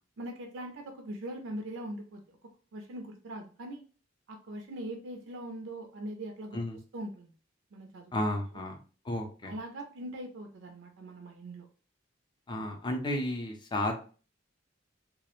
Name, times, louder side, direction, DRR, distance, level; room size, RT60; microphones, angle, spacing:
voice 1, 0.2-2.4 2.7-3.8 4.3-6.6 6.9-7.3 7.7-8.1 8.5-8.6 9.4-11.7, right 1 dB, 65° right, 4 dB, 0.4 m, -41 dB
voice 2, 8.1-8.8 9.1-9.5 12.5-13.9, left 1 dB, 25° left, 4 dB, 0.4 m, -32 dB
2.3 x 2.0 x 2.9 m, 0.38 s
head